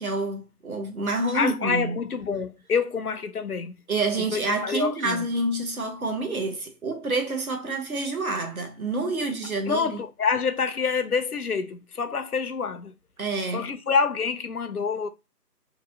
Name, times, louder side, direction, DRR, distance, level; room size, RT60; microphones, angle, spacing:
voice 1, 0.0-2.0 3.9-10.0 13.2-13.7, right 2 dB, 60° right, 1.0 m, -28 dB
voice 2, 1.3-3.7 4.3-5.3 9.7-12.9 13.5-15.1, left 5 dB, 65° left, 0.5 m, -27 dB
2.9 x 2.7 x 2.7 m
figure-of-eight pair, 160°, 49 cm